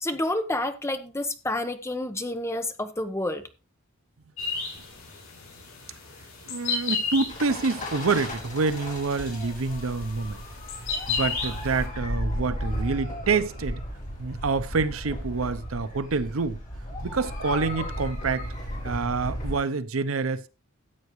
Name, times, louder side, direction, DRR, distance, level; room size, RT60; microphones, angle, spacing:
voice 1, 0.0-3.4, left 1 dB, 15° left, 1.1 m, -29 dB
sound 1, 4.4-11.9, left 5 dB, 70° left, 7.7 m, -34 dB
voice 2, 6.4-10.4 11.1-13.8 14.2-16.6 17.0-18.5 18.8-20.5, right 4 dB, 80° right, 0.7 m, -27 dB
sound 2, 7.3-19.6, equal, 40° left, 4.9 m, -35 dB
14.0 x 8.3 x 3.2 m
head